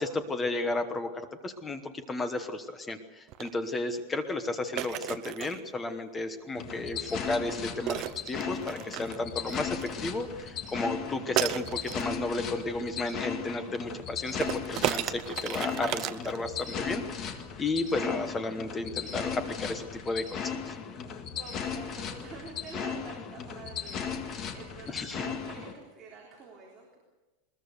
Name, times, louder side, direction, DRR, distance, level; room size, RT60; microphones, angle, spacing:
voice 1, 0.0-20.8 24.9-25.3, left 2 dB, 10° left, 9 dB, 1.1 m, -33 dB
sound 1, 3.3-3.5 4.8-5.6 7.9-9.9 11.4-12.1 14.4-16.8, right 15 dB, 35° right, 0.6 m, -33 dB
sound 2, 6.6-25.7, left 7 dB, 25° left, 1.8 m, -37 dB
voice 2, 21.1-27.0, right 4 dB, 15° right, -4 dB, 3.8 m, -47 dB
21.5 x 21.0 x 6.7 m, 1.1 s
supercardioid pair, 180°, 0 cm